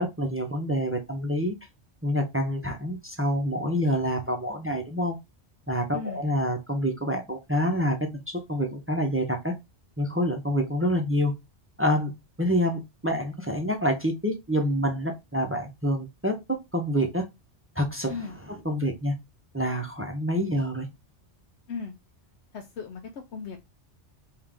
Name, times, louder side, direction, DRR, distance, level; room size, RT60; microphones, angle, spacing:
voice 1, 0.0-1.5 2.0-5.2 5.7-9.5 10.0-11.3 11.8-12.1 12.4-16.4 16.7-17.2 17.8-18.1 18.6-19.2 19.5-20.9, equal, 15° right, 0.5 m, -27 dB
voice 2, 22.5-23.6, left 5 dB, 80° left, 0.9 m, -36 dB
3.7 x 2.8 x 3.4 m
omnidirectional pair, 1.2 m